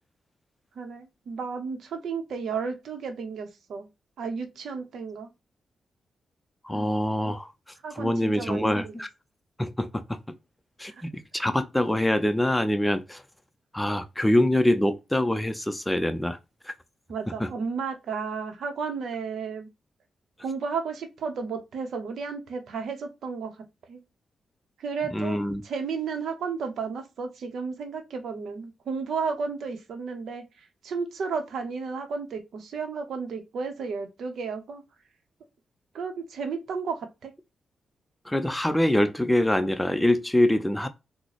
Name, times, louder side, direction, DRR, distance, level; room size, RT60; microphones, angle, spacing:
voice 1, 0.8-3.9 4.2-5.3 6.7-6.9 7.8-8.9 10.8-10.9 17.1-19.7 20.4-23.5 23.9-24.0 24.8-25.4 25.6-34.8 35.9-37.3, right 5 dB, 75° right, 0.7 m, -33 dB
voice 2, 6.6-7.5 7.9-9.1 9.6-10.4 10.8-13.2 13.7-16.4 16.6-16.7 17.4-17.5 25.1-25.6 38.3-40.9, left 1 dB, 10° left, 0.5 m, -24 dB
3.7 x 2.0 x 3.2 m
supercardioid pair, 50°, 0 cm